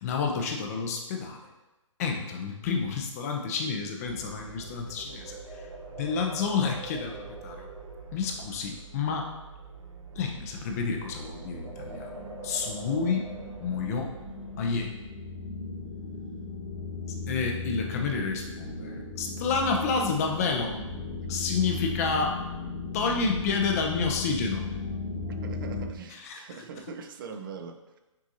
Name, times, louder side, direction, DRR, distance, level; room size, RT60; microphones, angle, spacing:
voice 1, 0.0-1.5 2.0-5.7 6.0-7.7 8.1-9.3 10.2-12.2 12.4-13.3 13.6-14.1 14.6-14.9 17.3-20.7 21.3-22.4 22.9-24.6 26.1-26.4, left 5 dB, 30° left, 2 dB, 0.6 m, -29 dB
sound 1, 4.0-14.9, right 3 dB, 80° right, 0.7 m, -44 dB
sound 2, 11.4-25.9, left 3 dB, 90° left, 1.4 m, -37 dB
voice 2, 25.3-28.0, right 5 dB, 40° right, 6 dB, 0.5 m, -42 dB
6.1 x 2.6 x 2.7 m, 1.0 s
hypercardioid pair, 150°, 17 cm